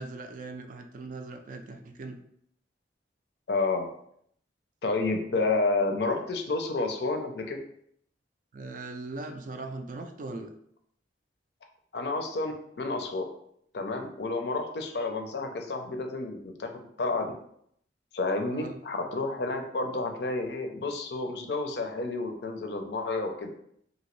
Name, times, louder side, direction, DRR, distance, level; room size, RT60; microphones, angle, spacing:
voice 1, 0.0-2.2 8.5-10.5 18.5-18.8, right 3 dB, 45° right, 6 dB, 0.3 m, -39 dB
voice 2, 3.5-3.9 4.8-7.6 11.9-13.2 13.7-16.7 17.0-17.3 18.1-23.5, left 3 dB, 60° left, 4 dB, 0.5 m, -30 dB
2.9 x 2.7 x 3.0 m, 0.69 s
head